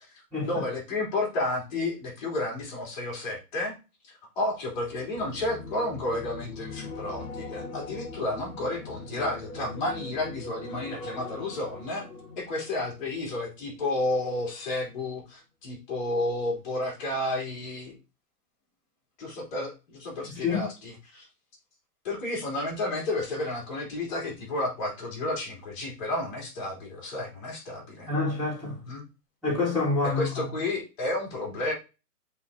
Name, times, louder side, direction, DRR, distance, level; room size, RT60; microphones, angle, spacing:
voice 1, 0.5-3.7 4.4-12.1 12.4-18.0 19.2-21.3 22.0-28.2 28.8-29.0 30.0-31.7, left 2 dB, 30° left, 3.4 m, -31 dB
sound 1, 4.7-14.1 14.4-14.7, left 3 dB, 60° left, 2.0 m, -41 dB
voice 2, 20.3-20.7 28.1-28.8 29.4-30.4, left 3 dB, ahead, 0.6 m, -27 dB
8.1 x 4.3 x 2.8 m
hypercardioid pair, 165°, 48 cm